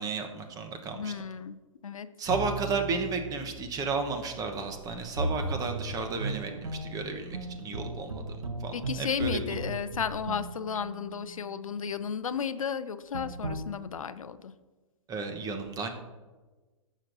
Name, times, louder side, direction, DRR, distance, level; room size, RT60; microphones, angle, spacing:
voice 1, 0.0-1.1 2.2-8.2 8.6-9.6 15.1-15.9, right 4 dB, 20° right, 6 dB, 1.0 m, -33 dB
voice 2, 0.9-1.6 1.8-2.1 8.7-14.5, left 7 dB, 80° left, 13 dB, 0.5 m, -33 dB
sound 1, 2.3-11.7 13.1-13.6, right 2 dB, 80° right, 0.8 m, -37 dB
14.0 x 6.3 x 2.6 m, 1.3 s
figure-of-eight pair, 115°, 17 cm